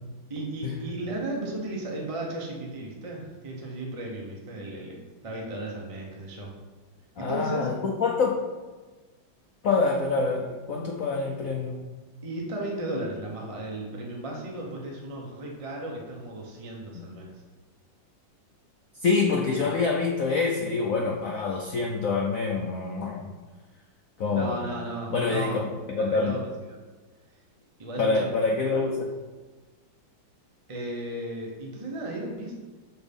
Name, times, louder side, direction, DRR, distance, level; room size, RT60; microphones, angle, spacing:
voice 1, 0.3-5.0 5.2-6.5 7.1-7.7 12.2-17.3 24.3-25.6 26.0-26.8 27.8-28.3 30.7-32.5, right 1 dB, 30° right, -2 dB, 0.6 m, -35 dB
voice 2, 7.2-8.4 9.6-11.8 19.0-23.3 24.2-24.6 25.1-26.4 28.0-29.1, left 4 dB, 70° left, 0 dB, 0.8 m, -26 dB
6.1 x 4.5 x 5.3 m, 1.3 s
omnidirectional pair, 2.2 m